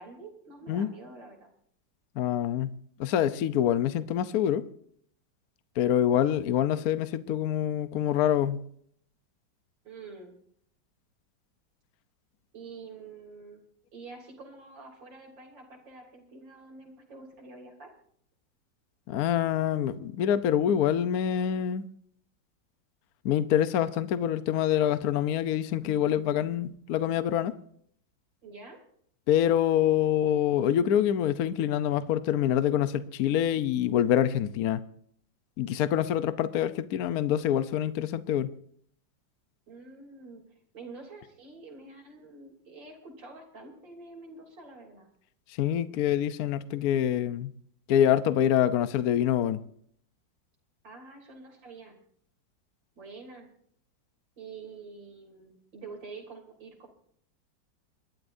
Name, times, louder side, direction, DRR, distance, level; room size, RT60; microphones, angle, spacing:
voice 1, 0.0-1.5 9.8-10.3 12.5-13.6 13.9-17.9 28.4-28.8 39.7-40.4 40.7-45.1 50.8-52.0 53.0-53.5 54.4-56.9, right 3 dB, 75° right, 3.9 m, -47 dB
voice 2, 2.2-2.7 3.0-4.6 5.8-8.6 19.1-21.9 23.2-27.5 29.3-34.8 35.6-38.5 45.6-47.5 47.9-49.6, left 10 dB, 65° left, 1.1 m, -26 dB
29.5 x 12.0 x 2.6 m
omnidirectional pair, 2.0 m